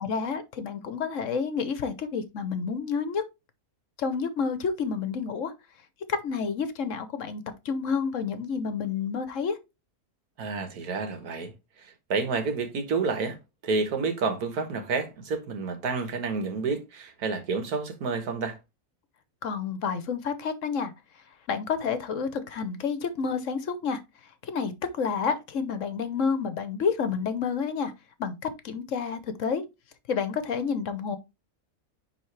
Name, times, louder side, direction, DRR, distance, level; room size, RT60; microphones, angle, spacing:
voice 1, 0.0-3.2 4.0-5.5 6.1-9.6 19.4-20.9 21.5-24.0 24.4-27.9 28.2-29.6 30.1-31.2, left 5 dB, 60° left, 1.2 m, -29 dB
voice 2, 10.4-13.4 13.6-18.6, right 4 dB, 90° right, 1.8 m, -29 dB
10.0 x 3.6 x 3.2 m
omnidirectional pair, 1.6 m